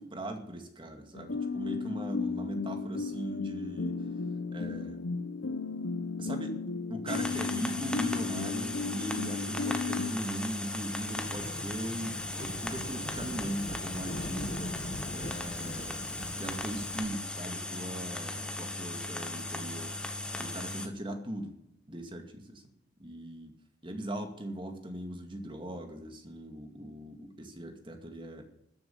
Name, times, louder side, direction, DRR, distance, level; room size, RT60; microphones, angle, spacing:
voice 1, 0.0-4.0 4.5-5.0 6.2-6.6 6.9-14.9 15.1-16.0 16.4-20.1 20.4-21.6 21.9-22.6 23.0-23.6 23.8-28.5, right 1 dB, 25° right, 5 dB, 2.3 m, -39 dB
sound 1, 1.1-10.1, left 4 dB, 75° left, 1.0 m, -34 dB
sound 2, 7.1-20.9, left 2 dB, 5° left, 1.3 m, -37 dB
Thunderstorm / Rain, 9.3-17.0, left 1 dB, 40° left, 1.5 m, -42 dB
13.5 x 10.5 x 7.1 m, 0.76 s
head